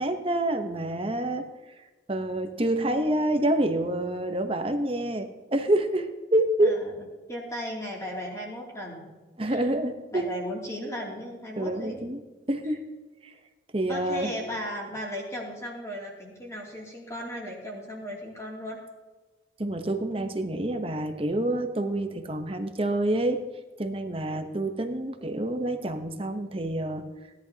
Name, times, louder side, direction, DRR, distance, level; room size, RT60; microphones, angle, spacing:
voice 1, 0.0-1.7 2.1-6.8 9.4-10.3 11.6-12.2 12.5-13.0 13.2-13.3 13.7-14.3 19.6-23.5 23.8-27.1, right 1 dB, 30° right, 7 dB, 0.9 m, -27 dB
voice 2, 7.3-9.1 9.5-9.6 10.1-12.1 13.9-18.8, equal, 15° left, -3 dB, 2.7 m, -36 dB
17.0 x 10.5 x 2.9 m, 1.3 s
head